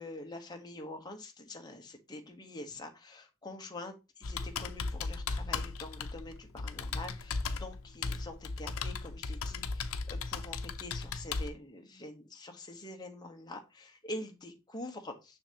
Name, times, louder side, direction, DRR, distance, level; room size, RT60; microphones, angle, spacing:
voice 1, 0.0-15.4, left 1 dB, 20° left, 3 dB, 1.1 m, -45 dB
Computer keyboard, 4.2-11.5, left 4 dB, 75° left, 0.7 m, -37 dB
6.9 x 6.2 x 2.8 m, 0.26 s
head